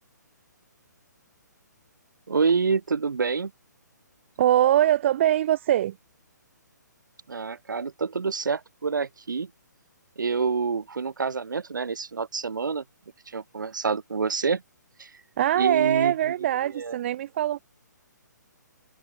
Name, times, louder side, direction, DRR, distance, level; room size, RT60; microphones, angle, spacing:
voice 1, 2.3-3.5 7.3-9.5 10.2-12.8 13.3-14.6 15.0-15.1 15.6-16.3 16.6-17.0, right 5 dB, 85° right, 1.8 m, -27 dB
voice 2, 4.4-6.0 15.4-17.6, right 12 dB, 40° right, 0.4 m, -22 dB
hypercardioid pair, 150°, 10 cm